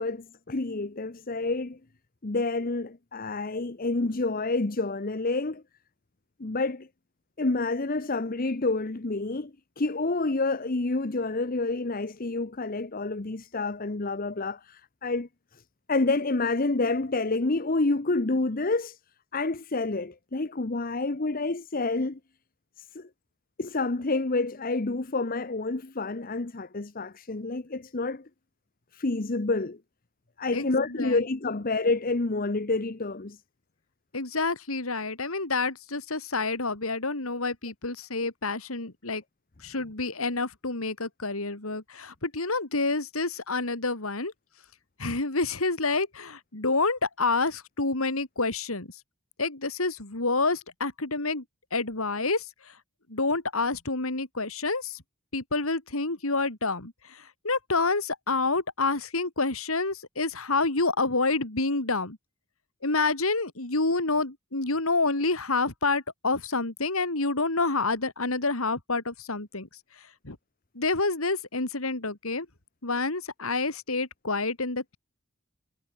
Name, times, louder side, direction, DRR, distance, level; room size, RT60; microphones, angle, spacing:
voice 1, 0.0-1.8 2.2-5.6 6.4-6.9 7.4-15.6 15.9-19.0 19.3-22.2 22.8-23.1 23.6-28.3 28.9-29.8 30.4-33.4, left 3 dB, 40° left, 0.9 m, -28 dB
voice 2, 30.5-31.2 34.1-39.2 39.6-44.3 45.0-48.9 49.4-51.4 51.7-52.4 53.1-55.0 55.3-62.2 62.8-69.7 70.2-70.4 70.7-72.5 72.8-75.0, left 3 dB, 85° left, 3.3 m, -28 dB
head